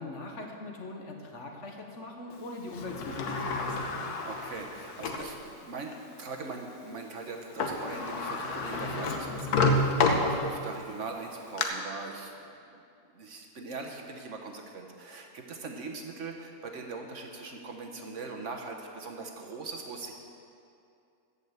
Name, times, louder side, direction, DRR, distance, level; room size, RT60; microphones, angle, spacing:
voice 1, 0.0-3.9, left 2 dB, 55° left, 1 dB, 1.4 m, -41 dB
Sliding door, 2.7-5.3 5.9-6.0 7.3-7.4 7.6-10.8 11.2-11.6, left 3 dB, 80° left, 1.4 m, -29 dB
voice 2, 4.2-12.3 12.7-12.8 13.1-20.1, right 3 dB, 55° right, 2 dB, 1.2 m, -41 dB
14.0 x 5.5 x 7.9 m, 2.5 s
omnidirectional pair, 1.6 m